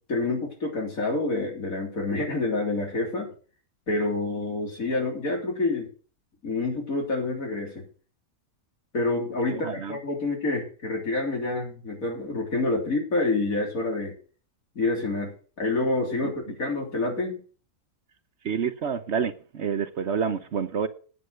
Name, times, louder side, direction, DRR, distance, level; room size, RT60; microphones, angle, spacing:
voice 1, 0.0-3.3 3.9-5.9 6.4-7.8 8.9-14.1 14.8-15.3 15.6-17.4, left 2 dB, 75° left, 3.8 m, -27 dB
voice 2, 9.5-10.0 16.2-16.3 18.4-20.9, right 7 dB, 55° right, 1.0 m, -28 dB
9.3 x 8.3 x 6.3 m
omnidirectional pair, 1.5 m